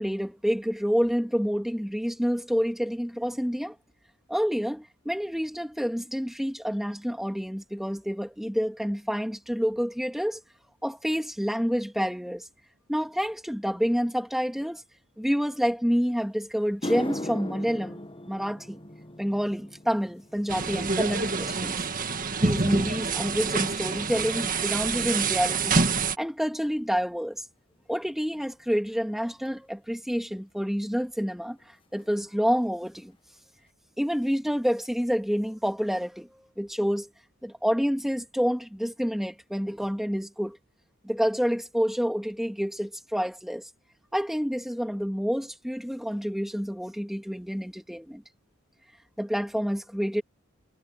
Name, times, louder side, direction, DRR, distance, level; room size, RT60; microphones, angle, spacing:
voice 1, 0.0-3.8 4.3-10.4 10.8-12.5 12.9-14.8 15.2-18.0 18.3-18.8 19.2-21.8 22.4-25.8 26.2-27.4 27.9-33.1 34.0-36.3 36.6-37.1 37.4-40.6 41.0-43.6 44.1-48.2 49.2-50.2, equal, ahead, 2.3 m, -28 dB
sound 1, 16.1-16.2 16.6-25.1 25.4-25.9 26.6-26.7 29.5-29.6 31.2-31.3 31.5-31.7 32.0-32.5 32.9-33.0 33.6-33.7, left 1 dB, 25° left, 1.3 m, -41 dB
sound 2, 20.5-26.2, right 4 dB, 40° right, 1.8 m, -27 dB
head